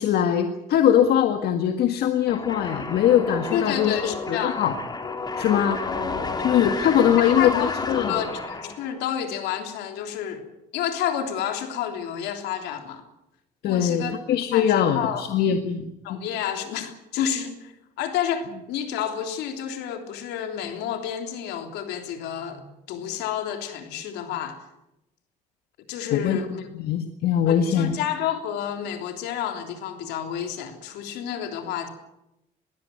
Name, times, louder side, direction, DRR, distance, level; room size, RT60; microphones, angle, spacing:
voice 1, 0.0-4.7 5.4-5.8 6.4-8.1 13.6-16.2 26.1-27.9, left 9 dB, 70° left, 7 dB, 1.8 m, -22 dB
sound 1, 2.3-9.0, left 3 dB, 25° left, 3.2 m, -31 dB
voice 2, 3.5-4.7 7.4-7.7 8.1-10.5 10.7-13.0 13.7-14.2 14.5-15.2 16.0-24.6 25.9-26.6 27.5-31.9, left 9 dB, 85° left, 6 dB, 3.4 m, -30 dB
21.5 x 16.5 x 9.5 m, 0.87 s
cardioid pair, 110°, 17 cm